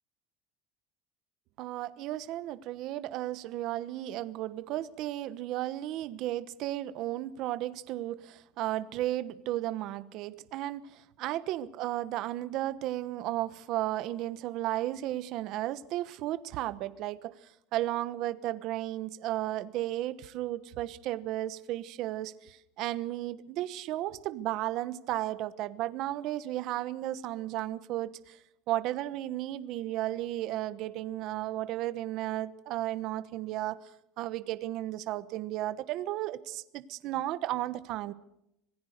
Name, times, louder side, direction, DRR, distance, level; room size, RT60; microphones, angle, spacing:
voice 1, 1.6-28.4 28.7-33.8 34.2-38.1, right 14 dB, 50° right, 15 dB, 1.1 m, -34 dB
26.0 x 18.0 x 6.6 m, 0.80 s
cardioid pair, 165°, 0 cm